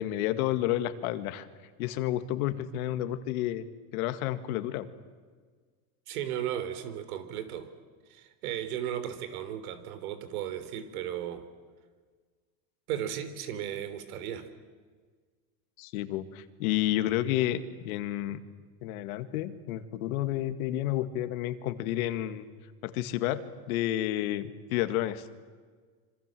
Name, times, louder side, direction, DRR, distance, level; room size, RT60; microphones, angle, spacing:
voice 1, 0.0-1.5 1.8-3.7 3.9-4.9 15.8-18.4 18.8-22.5 22.8-25.3, left 13 dB, 75° left, 10 dB, 2.0 m, -30 dB
voice 2, 6.1-7.7 8.1-11.5 12.9-14.5, right 10 dB, 80° right, 11 dB, 3.7 m, -35 dB
26.5 x 26.0 x 7.7 m, 1.5 s
supercardioid pair, 125°, 43 cm